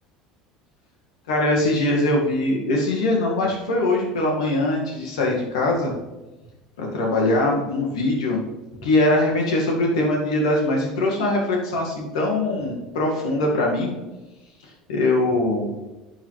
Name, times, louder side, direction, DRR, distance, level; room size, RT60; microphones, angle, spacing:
voice 1, 1.3-5.9 6.8-8.4 8.8-13.9 14.9-15.7, left 2 dB, 75° left, -1 dB, 2.2 m, -22 dB
11.0 x 7.5 x 3.4 m, 1.1 s
hypercardioid pair, 70°, 3 cm